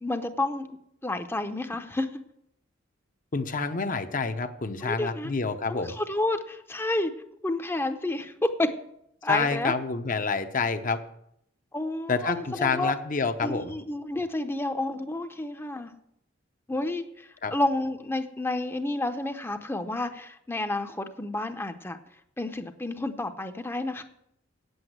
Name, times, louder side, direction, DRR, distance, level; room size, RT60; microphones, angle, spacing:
voice 1, 0.0-0.7 1.0-2.2 4.8-5.3 5.7-7.1 7.4-8.7 9.2-9.7 11.7-12.9 13.4-15.9 16.7-22.0 22.4-24.0, left 2 dB, 10° left, 8 dB, 0.7 m, -30 dB
voice 2, 3.3-5.9 9.3-11.0 12.1-13.8 17.4-17.5, left 4 dB, 45° left, 8 dB, 0.8 m, -28 dB
8.9 x 8.0 x 7.9 m, 0.75 s
head